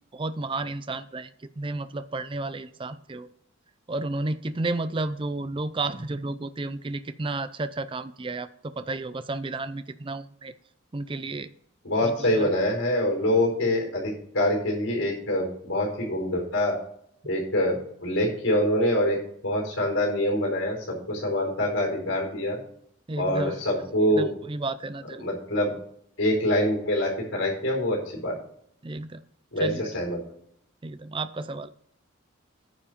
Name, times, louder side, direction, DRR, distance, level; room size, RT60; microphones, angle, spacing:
voice 1, 0.1-1.3 1.6-3.3 3.9-10.5 10.9-11.5 12.0-12.5 23.1-23.6 24.2-25.2 28.8-29.2 29.6-29.9 30.8-31.7, right 2 dB, 25° right, 12 dB, 0.5 m, -32 dB
voice 2, 11.8-16.7 17.2-19.2 19.4-22.6 23.2-24.3 25.2-25.7 26.2-28.3 29.5-30.2, left 1 dB, 75° left, -1 dB, 4.7 m, -25 dB
9.7 x 7.5 x 5.2 m, 0.66 s
head